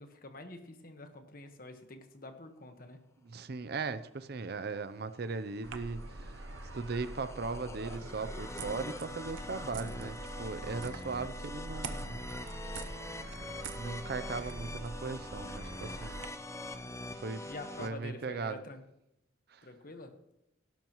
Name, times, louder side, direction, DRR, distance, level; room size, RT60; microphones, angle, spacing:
voice 1, 0.0-3.0 17.4-18.8 19.6-20.2, left 2 dB, 50° left, 6 dB, 1.3 m, -46 dB
voice 2, 3.2-6.4 6.7-12.3 13.8-16.2 17.1-17.5 17.8-18.6 19.5-19.6, right 4 dB, 55° right, 13 dB, 0.6 m, -38 dB
sound 1, 4.9-17.9, left 2 dB, 15° left, 0.6 m, -44 dB
sound 2, 5.6-16.3, right 2 dB, 90° right, 0.9 m, -44 dB
18.0 x 12.0 x 3.1 m, 0.85 s
head